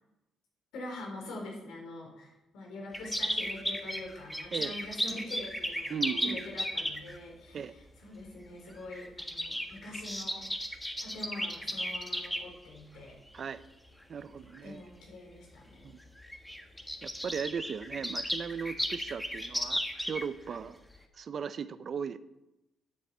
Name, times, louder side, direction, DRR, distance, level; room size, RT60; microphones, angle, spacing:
voice 1, 0.7-10.5 11.0-13.2 14.6-15.9, left 2 dB, 85° left, 0 dB, 4.5 m, -44 dB
sound 1, 2.9-7.2 8.2-8.4 8.7-12.4 13.1-13.4 14.0-14.1 14.4-14.6 15.5-15.6 15.9-16.0 16.2-20.6 20.9-21.0, equal, 5° left, 1.5 m, -35 dB
voice 2, 5.9-6.4 7.5-7.8 13.3-13.6 14.1-14.8 15.8-16.0 17.0-20.8 21.1-22.2, right 6 dB, 50° right, 14 dB, 0.6 m, -37 dB
13.0 x 9.6 x 4.4 m, 0.95 s
cardioid pair, 90°, 0 cm